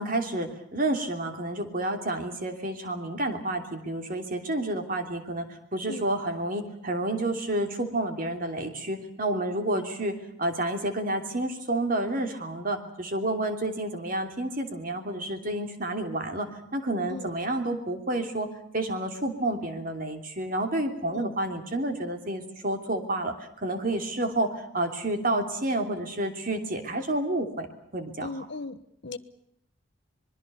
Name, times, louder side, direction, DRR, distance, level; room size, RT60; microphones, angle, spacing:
voice 1, 0.0-18.5 18.7-27.7 27.9-28.4, right 1 dB, 45° right, 5 dB, 3.0 m, -30 dB
voice 2, 28.2-29.2, left 3 dB, 55° left, 13 dB, 1.2 m, -37 dB
25.0 x 22.0 x 6.9 m, 0.75 s
head